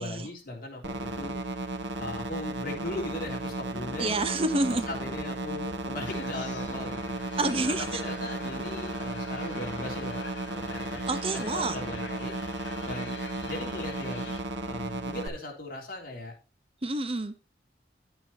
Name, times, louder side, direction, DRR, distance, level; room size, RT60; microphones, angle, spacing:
voice 1, 0.0-1.4 2.0-4.2 4.7-7.2 7.7-7.8 8.0-11.0 11.3-12.4 12.8-14.4 14.6-16.4, left 2 dB, 50° left, -1 dB, 3.5 m, -38 dB
sound 1, 0.8-15.3, right 2 dB, 75° right, 1.7 m, -35 dB
voice 2, 4.0-4.8 7.4-8.0 11.1-11.8 16.8-17.3, right 2 dB, 30° right, 10 dB, 0.9 m, -28 dB
sound 2, 6.0-14.4, left 3 dB, 75° left, 3.2 m, -44 dB
11.0 x 9.0 x 2.8 m, 0.33 s
head